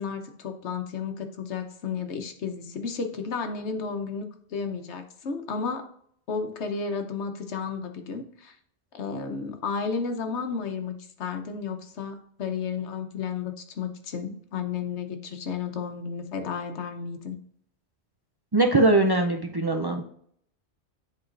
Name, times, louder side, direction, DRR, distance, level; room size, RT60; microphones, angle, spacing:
voice 1, 0.0-5.9 6.3-8.5 8.9-17.4, left 5 dB, 80° left, 6 dB, 1.2 m, -32 dB
voice 2, 18.5-20.0, right 2 dB, 35° right, 3 dB, 0.3 m, -21 dB
10.5 x 3.6 x 2.5 m, 0.64 s
omnidirectional pair, 1.2 m